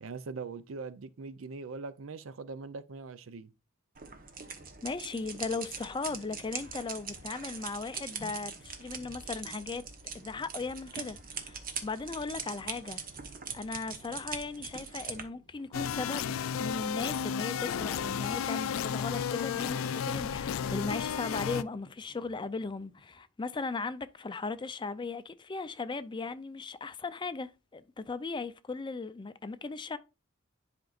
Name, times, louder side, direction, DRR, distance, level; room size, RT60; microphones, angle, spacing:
voice 1, 0.0-3.5, right 4 dB, 75° right, 0.5 m, -41 dB
sound 1, 3.9-15.2, right 6 dB, 45° right, 1.0 m, -42 dB
sound 2, 4.4-23.2, equal, 20° right, 2.3 m, -61 dB
voice 2, 4.8-9.8 10.1-13.0 13.5-30.0, left 4 dB, 25° left, 0.4 m, -37 dB
sound 3, 15.7-21.6, left 7 dB, 85° left, 0.4 m, -33 dB
10.5 x 5.2 x 2.4 m
head